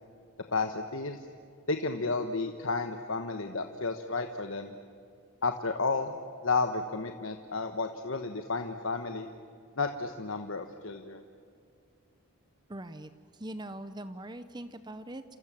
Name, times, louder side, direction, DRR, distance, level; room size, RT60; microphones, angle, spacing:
voice 1, 0.5-1.3 1.7-4.7 5.4-6.1 6.4-9.3 9.8-11.2, left 3 dB, 60° left, 6 dB, 1.2 m, -32 dB
voice 2, 12.7-15.4, right 1 dB, 20° right, 11 dB, 0.8 m, -42 dB
29.5 x 27.0 x 7.5 m, 2.4 s
head